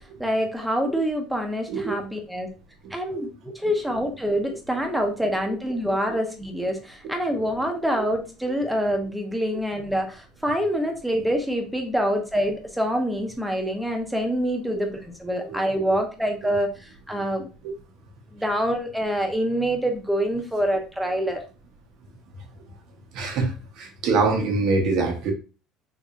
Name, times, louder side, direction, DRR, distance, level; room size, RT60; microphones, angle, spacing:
voice 1, 0.2-2.5 2.9-17.5 18.3-21.4, equal, 5° right, 3 dB, 0.9 m, -26 dB
voice 2, 1.7-2.0 3.1-3.3 5.4-5.5 7.3-7.4 15.5-15.6 15.9-16.0 17.2-17.3 17.6-17.7 23.1-25.3, right 3 dB, 65° right, 3 dB, 1.1 m, -25 dB
3.7 x 3.1 x 2.5 m, 0.34 s
supercardioid pair, 100°, 0 cm